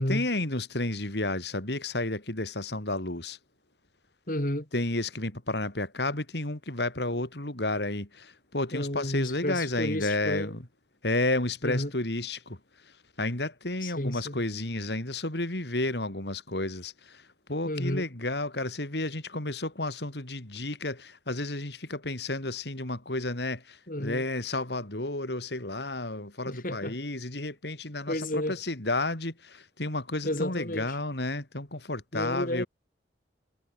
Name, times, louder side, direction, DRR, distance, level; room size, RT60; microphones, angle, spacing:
voice 1, 0.0-3.4 4.7-10.6 11.0-12.6 12.8-32.7, left 2 dB, 75° left, 3.7 m, -32 dB
voice 2, 4.3-4.7 8.7-10.5 11.6-11.9 13.8-14.4 17.7-18.0 23.9-24.2 26.5-27.0 28.1-28.5 30.2-31.0 32.1-32.7, left 1 dB, 50° left, 3.5 m, -31 dB
head